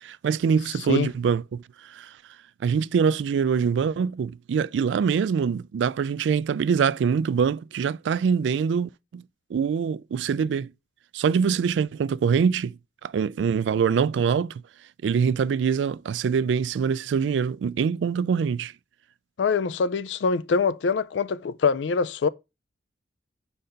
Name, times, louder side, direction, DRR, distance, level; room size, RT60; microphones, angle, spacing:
voice 1, 0.0-1.6 1.9-2.1 2.6-9.2 9.5-10.7 11.1-14.6 15.0-18.7, right 6 dB, 85° right, 0.3 m, -24 dB
voice 2, 19.4-22.3, left 5 dB, 85° left, 0.4 m, -24 dB
5.5 x 4.0 x 5.1 m
head